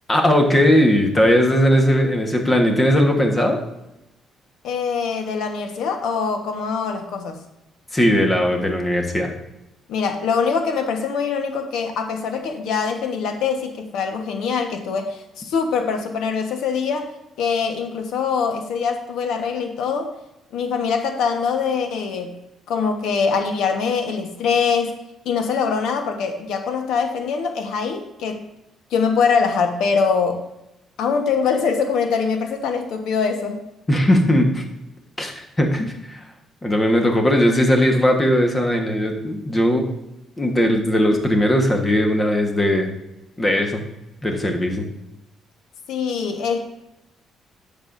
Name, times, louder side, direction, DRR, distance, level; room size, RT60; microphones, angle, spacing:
voice 1, 0.1-3.6 7.9-9.3 33.9-34.6 35.2-36.2 36.6-39.8 40.4-42.9 43.4-43.8 44.2-44.8, equal, 20° left, 3 dB, 1.3 m, -18 dB
voice 2, 4.6-7.4 9.9-17.1 17.4-20.1 20.5-22.3 22.7-24.9 25.2-28.5 28.9-30.4 31.0-33.6 45.9-46.6, left 5 dB, 80° left, 5 dB, 1.2 m, -23 dB
10.5 x 6.9 x 2.6 m, 0.89 s
cardioid pair, 125°, 0 cm